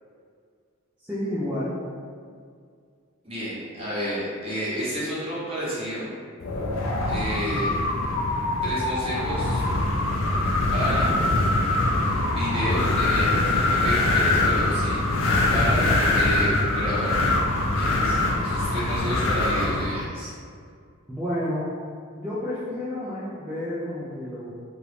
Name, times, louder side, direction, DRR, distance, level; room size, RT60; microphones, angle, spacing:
voice 1, 1.0-1.8 21.1-21.7 22.1-24.5, left 1 dB, 10° right, -11 dB, 0.4 m, -30 dB
voice 2, 3.2-6.1 7.1-7.7 8.6-9.6 10.7-11.1 12.2-15.0 15.5-17.1 17.7-20.3, equal, 25° right, -9 dB, 0.9 m, -30 dB
Wind, 6.4-20.0, left 2 dB, 65° left, 0.4 m, -23 dB
2.9 x 2.5 x 3.3 m, 2.1 s
head